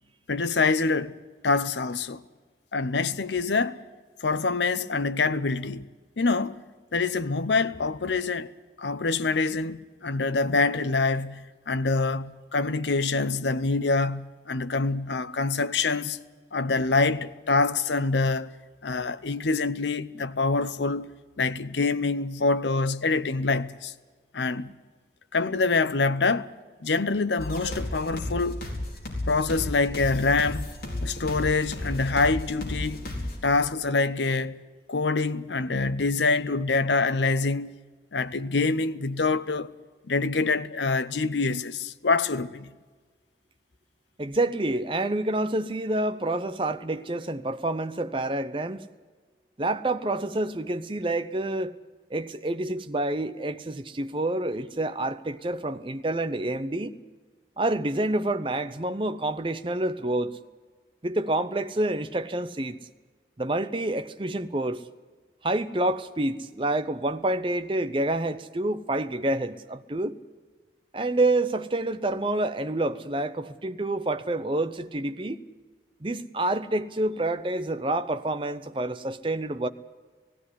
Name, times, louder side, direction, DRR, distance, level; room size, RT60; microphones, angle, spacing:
voice 1, 0.3-1.1 1.4-2.2 2.7-3.8 4.2-5.9 6.2-6.6 6.9-8.5 8.8-16.2 16.5-18.5 18.8-21.1 21.4-23.9 24.3-24.7 25.3-26.5 26.8-28.6 29.3-30.7 31.0-33.0 33.4-34.6 34.9-37.7 38.1-39.7 40.1-42.7, left 3 dB, 80° left, 0.8 m, -25 dB
sound 1, 27.4-33.4, left 1 dB, 55° left, 4.6 m, -33 dB
voice 2, 44.2-48.9 49.6-51.8 52.1-56.9 57.6-60.4 61.0-62.8 63.4-64.8 65.4-70.2 70.9-75.4 76.0-79.7, right 2 dB, 30° right, 0.7 m, -28 dB
17.5 x 16.0 x 9.8 m
head